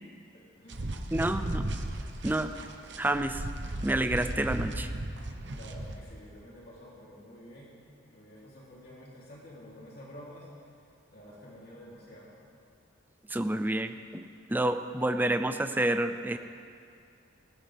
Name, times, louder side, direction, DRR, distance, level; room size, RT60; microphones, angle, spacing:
voice 1, 0.3-1.2 5.5-7.7 8.1-10.7 11.1-12.4, equal, 50° left, -7 dB, 3.3 m, -50 dB
sound 1, 0.7-6.0, right 1 dB, 60° right, 1.0 m, -36 dB
voice 2, 1.1-1.7 2.2-2.5 3.0-3.4 3.8-4.9 13.3-16.4, right 1 dB, 10° right, 9 dB, 0.5 m, -29 dB
19.5 x 16.0 x 3.5 m, 2.3 s
head